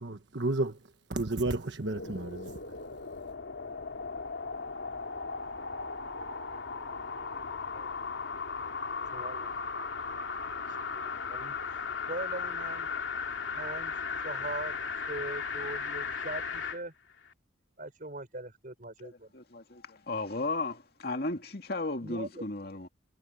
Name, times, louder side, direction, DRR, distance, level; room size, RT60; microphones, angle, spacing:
voice 1, 0.0-0.8 1.1-2.6, right 2 dB, 65° right, 1.4 m, -32 dB
sound 1, 1.8-16.8 17.3-17.4, left 5 dB, 85° left, 2.6 m, -37 dB
voice 2, 7.7-8.1 9.1-9.9 10.9-11.6 12.1-12.9 13.5-13.9 14.2-14.8 15.1-16.9 17.8-19.4 22.0-22.5, right 2 dB, 45° right, 5.4 m, -41 dB
voice 3, 19.3-22.9, left 2 dB, 55° left, 2.3 m, -35 dB
head